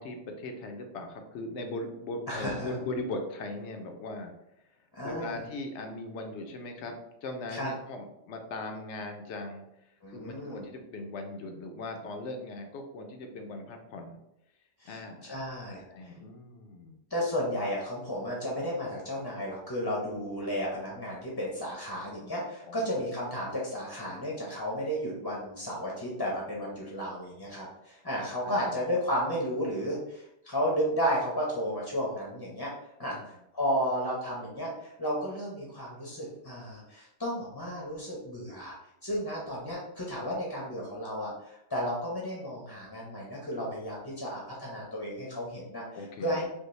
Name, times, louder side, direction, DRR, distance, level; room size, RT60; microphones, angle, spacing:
voice 1, 0.0-4.3 4.6-4.7 5.0-14.2 14.8-15.4 15.8-17.0 22.7-23.0 28.4-28.8 33.0-33.3 45.9-46.4, left 2 dB, 75° left, 4 dB, 0.9 m, -39 dB
voice 2, 2.3-2.7 4.9-5.4 7.5-7.7 10.0-10.6 14.8-15.8 17.1-32.7 33.0-38.7 39.0-45.8 46.2-46.4, equal, 25° left, -4 dB, 0.6 m, -33 dB
5.3 x 2.1 x 3.1 m, 0.84 s
omnidirectional pair, 1.2 m